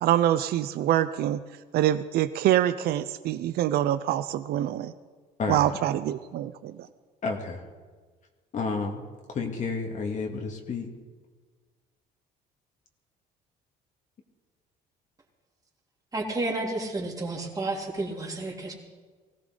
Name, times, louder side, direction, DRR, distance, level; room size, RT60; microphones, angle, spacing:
voice 1, 0.0-1.4 1.7-4.9 5.5-6.7, right 12 dB, 70° right, 11 dB, 0.6 m, -25 dB
voice 2, 5.4-5.8 7.2-7.6 8.5-9.0 9.3-10.9, left 4 dB, 45° left, 2 dB, 2.2 m, -31 dB
voice 3, 16.1-18.7, right 2 dB, 20° right, -1 dB, 3.4 m, -31 dB
20.0 x 16.5 x 3.9 m, 1.4 s
cardioid pair, 110°, 17 cm